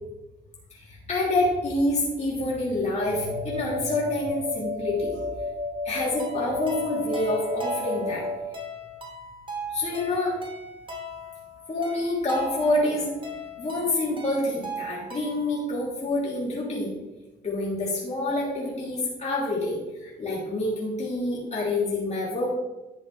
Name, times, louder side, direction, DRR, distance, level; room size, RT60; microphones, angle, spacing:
voice 1, 0.7-5.2 5.8-8.2 9.7-10.4 11.7-13.2 13.6-16.9 17.4-22.5, left 2 dB, 35° left, -6 dB, 3.1 m, -27 dB
sound 1, 3.0-8.4, left 2 dB, 65° right, 1.2 m, -32 dB
sound 2, 6.2-15.6, right 1 dB, 25° right, 2.6 m, -38 dB
11.5 x 7.1 x 3.3 m, 1.0 s
cardioid pair, 90°, 20 cm